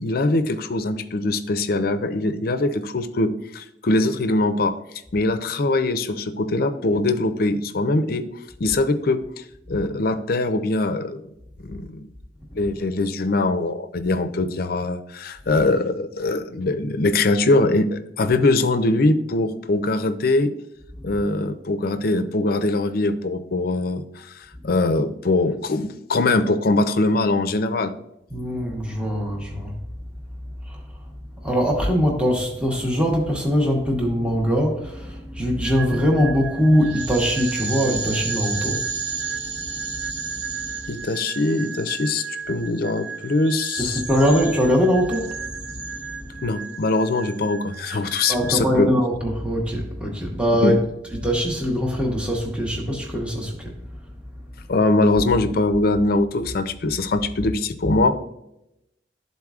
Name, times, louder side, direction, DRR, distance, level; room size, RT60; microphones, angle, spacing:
voice 1, 0.0-4.8 5.1-8.3 8.6-9.2 9.7-11.2 11.6-12.0 12.5-20.5 21.0-27.9 40.9-44.0 46.4-48.9 50.6-50.7 54.7-58.2, left 2 dB, 55° left, 10 dB, 0.5 m, -22 dB
voice 2, 28.3-29.7 30.7-30.8 31.4-40.3 40.6-40.9 43.8-46.5 48.3-50.8 51.1-53.7, equal, 5° right, -1 dB, 0.9 m, -22 dB
sound 1, 35.6-48.6, right 5 dB, 70° right, 0.7 m, -33 dB
12.0 x 4.1 x 2.4 m, 0.86 s
head